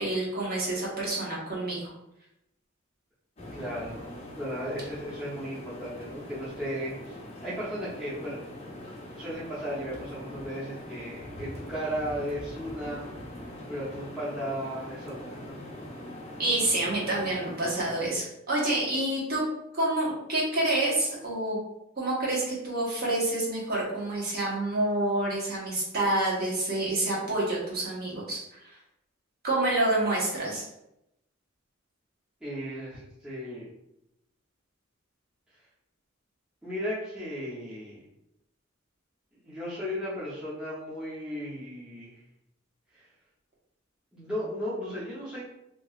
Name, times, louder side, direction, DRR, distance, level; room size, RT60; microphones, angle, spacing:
voice 1, 0.0-1.9 16.4-19.4 19.7-21.6 22.0-28.8 29.4-30.6, right 1 dB, 50° right, -5 dB, 1.1 m, -28 dB
sound 1, 3.4-18.2, left 1 dB, 30° left, 0.6 m, -43 dB
voice 2, 3.5-7.2 7.4-8.4 9.2-13.0 13.7-15.6 32.4-33.7 36.6-38.0 39.4-42.1 42.9-43.1 44.1-45.4, equal, 5° right, -11 dB, 0.7 m, -35 dB
2.9 x 2.8 x 2.3 m, 0.85 s
head